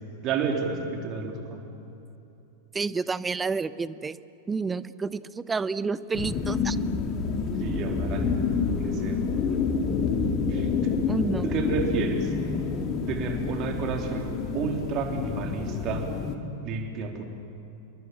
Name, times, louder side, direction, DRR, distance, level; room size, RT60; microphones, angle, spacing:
voice 1, 0.2-1.6 7.6-9.2 10.5-10.7 11.4-12.3 13.1-16.1 16.6-17.2, right 5 dB, 35° right, 2 dB, 3.7 m, -31 dB
voice 2, 2.7-4.2 4.5-6.8 11.1-11.5, right 4 dB, 15° right, 18 dB, 0.7 m, -29 dB
sound 1, 6.1-16.3, left 5 dB, 35° left, 2.3 m, -28 dB
29.0 x 23.0 x 7.6 m, 2.8 s
figure-of-eight pair, 90°, 0 cm